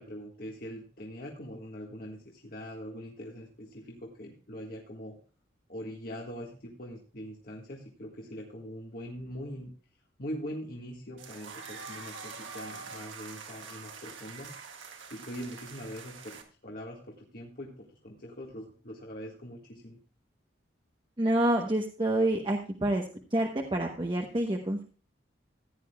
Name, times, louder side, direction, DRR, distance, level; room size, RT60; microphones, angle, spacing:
voice 1, 0.0-5.2 5.7-9.7 10.2-14.5 15.1-20.0, equal, 50° left, -1 dB, 1.6 m, -42 dB
sound 1, 11.2-16.4, right 5 dB, 90° right, 1.6 m, -45 dB
voice 2, 21.2-23.0 23.3-24.8, right 1 dB, 25° right, 2 dB, 0.9 m, -27 dB
15.5 x 10.0 x 2.3 m, 0.39 s
head